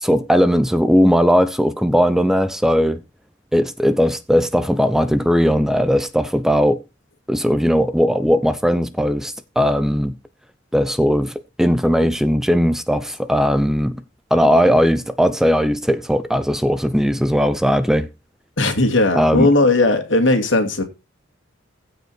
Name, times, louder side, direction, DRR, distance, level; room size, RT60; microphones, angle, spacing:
voice 1, 0.0-3.0 3.5-6.8 7.3-10.1 10.7-14.0 14.3-18.1 19.2-19.5, equal, ahead, 0.7 m, -18 dB
voice 2, 18.6-20.8, left 2 dB, 75° left, 2.6 m, -17 dB
15.5 x 5.6 x 4.5 m
head